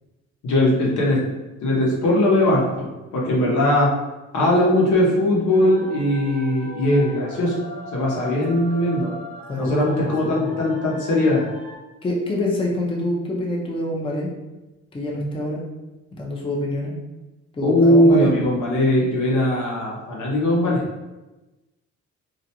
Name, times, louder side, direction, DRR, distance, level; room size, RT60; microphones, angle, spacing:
voice 1, 0.4-1.2 1.6-3.9 4.3-7.6 7.9-9.1 9.6-11.4 17.6-20.8, left 1 dB, 75° left, -4 dB, 0.9 m, -19 dB
sound 1, 5.5-11.8, left 1 dB, 30° right, 0.8 m, -39 dB
voice 2, 8.2-8.5 9.5-9.8 10.0-10.6 12.0-14.3 14.9-15.6 16.1-16.9 17.5-18.3, left 1 dB, 20° left, -2 dB, 0.5 m, -26 dB
2.5 x 2.1 x 2.8 m, 1.1 s
cardioid pair, 90°, 30 cm